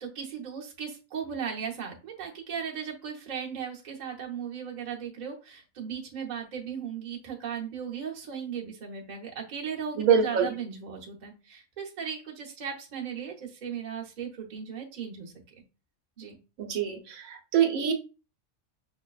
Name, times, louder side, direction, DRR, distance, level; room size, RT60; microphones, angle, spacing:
voice 1, 0.0-15.3 16.2-16.4, right 7 dB, 40° right, -1 dB, 0.8 m, -37 dB
voice 2, 10.0-10.5 16.6-17.9, right 7 dB, 80° right, 5 dB, 1.1 m, -25 dB
5.8 x 2.1 x 2.3 m, 0.32 s
omnidirectional pair, 1.4 m